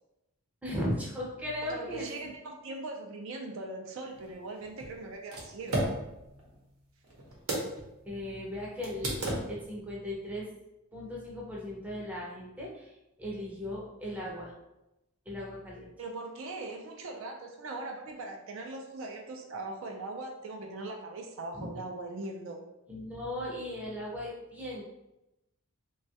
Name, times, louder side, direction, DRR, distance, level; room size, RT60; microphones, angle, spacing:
voice 1, 0.6-2.1 8.0-9.2 9.5-10.5 10.9-12.9 13.2-14.5 15.3-15.9 21.5-21.7 22.9-24.8, left 1 dB, 5° right, -4 dB, 0.5 m, -37 dB
voice 2, 1.7-5.9 16.0-22.6, right 2 dB, 60° right, 2 dB, 0.4 m, -40 dB
sound 1, 4.1-7.9 8.2-8.3 8.8-9.8, right 1 dB, 80° right, 0.8 m, -35 dB
3.0 x 2.3 x 2.7 m, 0.92 s
head